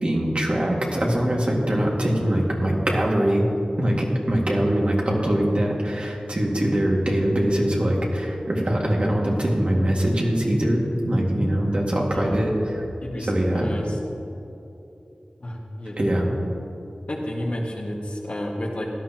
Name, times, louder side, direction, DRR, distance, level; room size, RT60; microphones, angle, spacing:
voice 1, 0.0-3.4 3.8-12.8 13.2-13.7 16.0-16.3, right 1 dB, 50° right, -2 dB, 2.1 m, -22 dB
voice 2, 12.1-12.5 13.0-14.0 15.4-16.0 17.1-18.8, left 1 dB, 55° left, -2 dB, 1.8 m, -31 dB
16.5 x 11.5 x 3.0 m, 2.9 s
wide cardioid pair, 55°, 3 cm